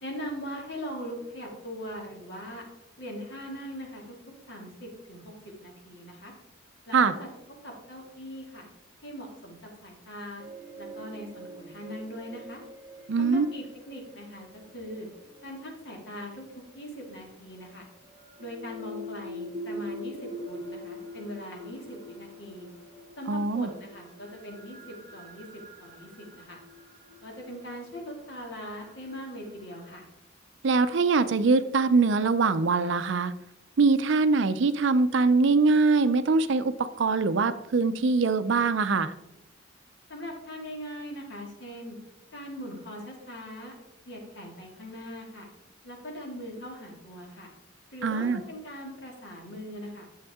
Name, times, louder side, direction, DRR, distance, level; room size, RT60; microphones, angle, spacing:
voice 1, 0.0-2.7 3.0-4.2 4.5-5.3 5.6-6.3 6.9-7.3 7.6-8.7 9.0-10.4 10.8-12.6 13.2-15.1 15.4-17.9 18.4-22.7 23.2-25.5 25.8-26.6 27.2-30.1 40.1-42.0 42.3-43.7 44.1-45.5 45.8-47.5 47.9-50.1, equal, 55° left, 0 dB, 2.2 m, -41 dB
sound 1, 10.4-16.4 17.6-30.0, left 1 dB, 45° right, 1.3 m, -44 dB
voice 2, 13.1-13.5 23.3-23.7 30.6-33.3 33.8-36.7 37.0-39.1 48.0-48.4, right 4 dB, 65° right, 12 dB, 0.5 m, -23 dB
9.5 x 7.2 x 3.6 m, 0.91 s
head